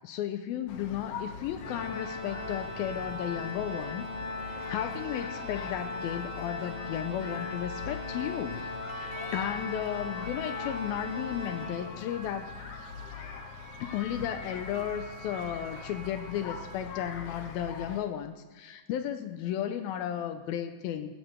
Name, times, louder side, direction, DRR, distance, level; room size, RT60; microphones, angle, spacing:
voice 1, 0.0-4.1 4.7-12.5 12.8-12.9 13.8-21.1, left 10 dB, 80° left, 9 dB, 2.4 m, -34 dB
sound 1, 0.7-18.0, left 6 dB, 65° left, 2.1 m, -43 dB
Organ, 1.6-12.3, left 2 dB, 25° left, 5.8 m, -39 dB
sound 2, 8.1-16.8, right 2 dB, 20° right, 5.6 m, -47 dB
19.0 x 15.0 x 3.4 m, 1.4 s
omnidirectional pair, 4.5 m